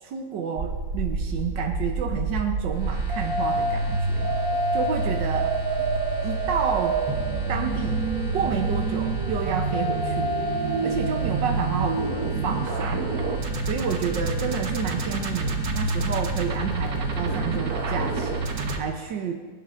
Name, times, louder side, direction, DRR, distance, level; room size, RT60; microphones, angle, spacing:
voice 1, 0.0-4.3 4.7-5.5 6.2-7.0 7.5-8.0 8.3-10.5 10.8-13.0 13.7-19.3, right 7 dB, 85° right, 3 dB, 1.6 m, -30 dB
sound 1, 0.6-18.8, right 3 dB, 60° right, 1.4 m, -27 dB
sound 2, 2.7-18.7, equal, 30° left, 1.8 m, -43 dB
25.5 x 10.5 x 2.6 m, 1.3 s
omnidirectional pair, 1.9 m